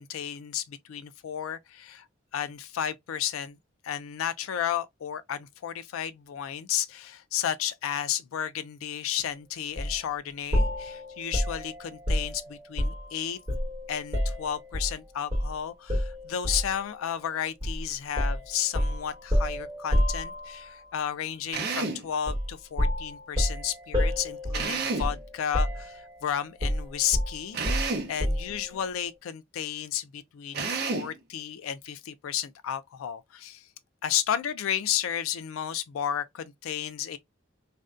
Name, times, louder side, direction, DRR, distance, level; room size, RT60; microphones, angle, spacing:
voice 1, 0.0-2.1 2.3-3.6 3.8-13.4 13.9-33.7 34.0-37.2, left 9 dB, 85° left, 0.3 m, -33 dB
sound 1, 9.8-10.0 10.5-13.1 13.5-14.9 15.3-15.5 15.9-16.8 17.6-17.8 18.2-20.7 22.3-22.5 22.8-25.3 25.5-26.2 26.6-28.6, equal, 25° right, 1.1 m, -28 dB
Drill, 21.5-22.1 24.5-25.2 27.5-28.2 30.5-31.2, right 4 dB, 50° right, 0.6 m, -30 dB
2.5 x 2.1 x 2.3 m
head